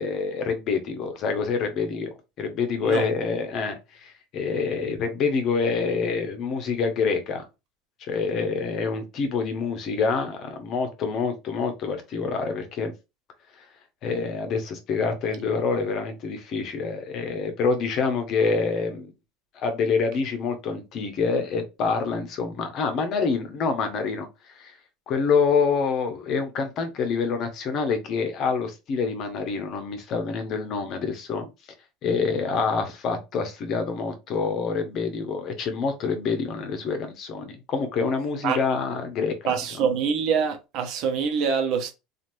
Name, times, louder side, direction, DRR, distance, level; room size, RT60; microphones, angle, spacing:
voice 1, 0.0-7.5 8.0-12.9 13.6-13.7 14.0-19.1 19.5-24.7 25.1-31.5 32.0-39.6, left 5 dB, 50° left, 0.9 m, -26 dB
voice 2, 39.5-41.9, right 6 dB, 60° right, 0.8 m, -25 dB
3.1 x 2.5 x 2.6 m
supercardioid pair, 110°, 0 cm